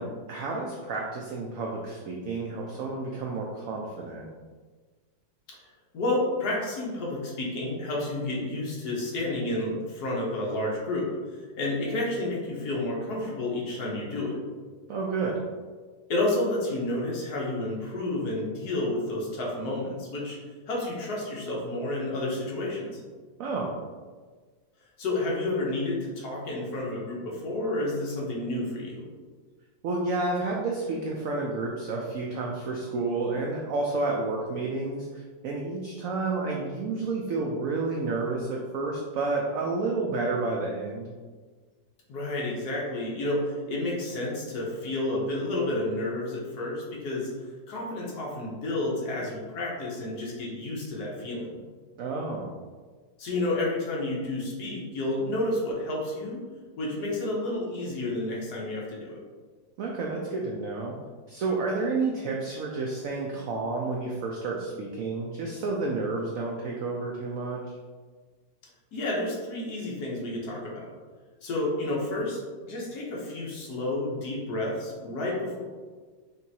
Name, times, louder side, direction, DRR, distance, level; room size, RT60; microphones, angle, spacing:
voice 1, 0.0-4.3 14.9-15.4 23.4-23.7 29.8-41.1 52.0-52.5 59.8-61.0 61.3-67.6, right 3 dB, 90° right, -1 dB, 0.7 m, -30 dB
voice 2, 5.9-14.4 16.1-20.4 20.7-23.0 25.0-29.0 42.1-47.3 47.7-51.6 53.2-56.4 56.8-59.2 68.9-70.9 71.4-75.6, left 2 dB, 65° left, -3 dB, 1.3 m, -30 dB
5.3 x 2.6 x 2.7 m, 1.5 s
omnidirectional pair, 2.0 m